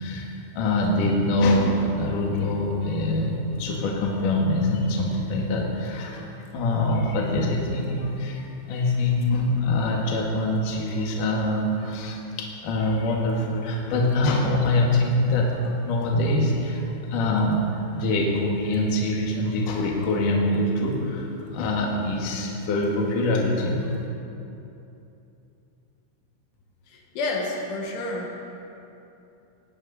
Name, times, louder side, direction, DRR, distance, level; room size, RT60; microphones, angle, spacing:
voice 1, 0.0-23.9, left 1 dB, 55° left, -2 dB, 3.0 m, -24 dB
voice 2, 26.9-28.5, left 2 dB, 80° left, 0 dB, 4.2 m, -30 dB
19.5 x 17.0 x 4.2 m, 2.8 s
omnidirectional pair, 5.5 m